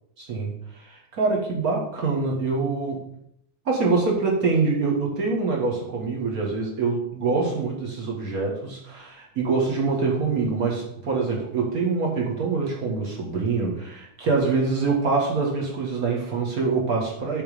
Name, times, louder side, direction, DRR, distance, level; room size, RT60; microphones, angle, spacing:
voice 1, 0.2-3.1 3.6-17.4, right 4 dB, 35° right, -2 dB, 1.5 m, -25 dB
8.7 x 4.4 x 6.8 m, 0.74 s
omnidirectional pair, 4.1 m